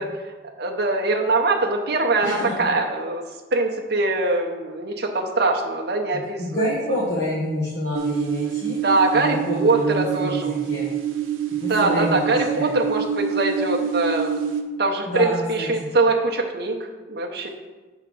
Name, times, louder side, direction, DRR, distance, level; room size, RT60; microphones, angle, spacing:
voice 1, 0.0-3.2 3.5-7.0 8.8-10.5 11.7-14.5 14.8-17.5, right 2 dB, 55° right, 1 dB, 0.8 m, -23 dB
voice 2, 2.2-2.7 6.4-8.8 9.2-10.9 11.6-12.7 15.1-15.7, left 1 dB, 55° left, -4 dB, 1.2 m, -28 dB
sound 1, 7.9-14.6, right 9 dB, 90° right, 0.7 m, -26 dB
6.8 x 3.7 x 6.1 m, 1.3 s
head